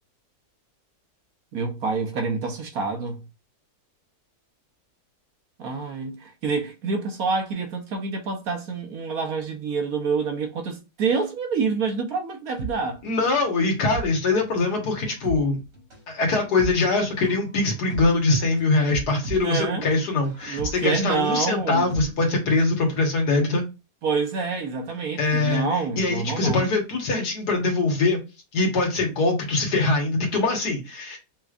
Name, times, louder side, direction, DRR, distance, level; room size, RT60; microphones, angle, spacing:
voice 1, 1.5-3.3 5.6-13.0 19.3-19.9 20.4-21.9 24.0-26.7, right 4 dB, 60° right, 1.3 m, -27 dB
sound 1, 12.6-22.8 23.1-23.2, right 4 dB, 85° right, 3.3 m, -37 dB
voice 2, 13.0-15.6 16.1-23.6 25.2-25.7 26.0-28.2 28.5-31.2, left 3 dB, 65° left, 1.9 m, -23 dB
5.9 x 3.1 x 2.5 m
omnidirectional pair, 1.9 m